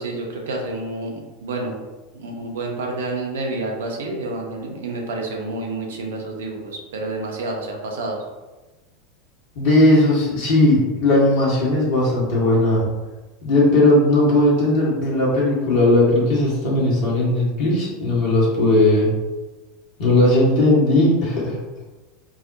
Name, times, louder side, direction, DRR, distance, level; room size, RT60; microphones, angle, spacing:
voice 1, 0.0-1.7 2.1-8.2, right 2 dB, 70° right, 1 dB, 0.6 m, -29 dB
voice 2, 9.5-12.9 13.4-19.1 20.0-21.6, left 1 dB, 55° left, -5 dB, 1.3 m, -17 dB
4.6 x 2.1 x 2.7 m, 1.2 s
figure-of-eight pair, 80°, 0 cm